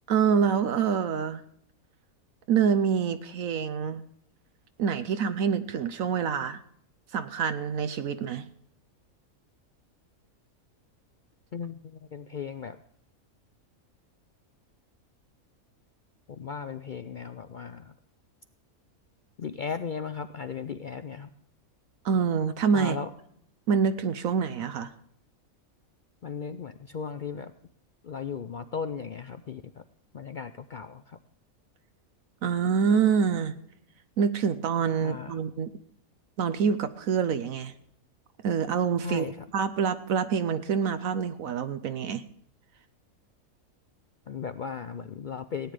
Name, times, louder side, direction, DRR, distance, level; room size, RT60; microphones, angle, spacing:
voice 1, 0.1-1.4 2.5-4.0 4.8-6.6 7.1-8.5 22.0-23.0 23.7-24.9 32.4-33.5 34.2-35.7 36.4-37.7 38.4-39.2 39.5-42.2, right 6 dB, 70° right, 11 dB, 1.1 m, -26 dB
voice 2, 11.5-12.8 16.3-17.9 19.4-21.3 22.7-23.1 26.2-27.5 28.0-29.8 30.1-31.2 35.0-35.4 39.0-39.5 44.3-45.7, left 6 dB, 65° left, 11 dB, 0.5 m, -36 dB
17.0 x 9.5 x 4.9 m, 0.68 s
omnidirectional pair, 1.5 m